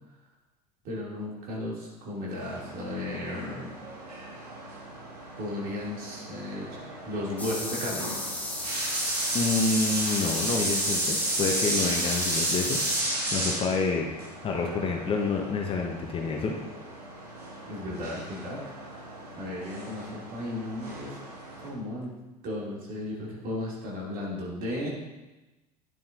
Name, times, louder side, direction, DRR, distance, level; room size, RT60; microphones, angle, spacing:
voice 1, 0.8-3.7 5.4-8.0 17.6-18.6 19.3-21.2 21.6-22.1 22.4-24.9, left 1 dB, 45° right, -4 dB, 2.7 m, -35 dB
sound 1, 2.3-21.7, right 1 dB, 75° right, 1.8 m, -34 dB
sound 2, 7.4-13.0, left 1 dB, 10° left, 1.4 m, -34 dB
voice 2, 9.3-12.8 13.3-14.1 14.4-16.6, left 4 dB, 25° left, 2 dB, 0.9 m, -28 dB
10.0 x 7.1 x 2.6 m, 1.1 s
figure-of-eight pair, 70°, 20 cm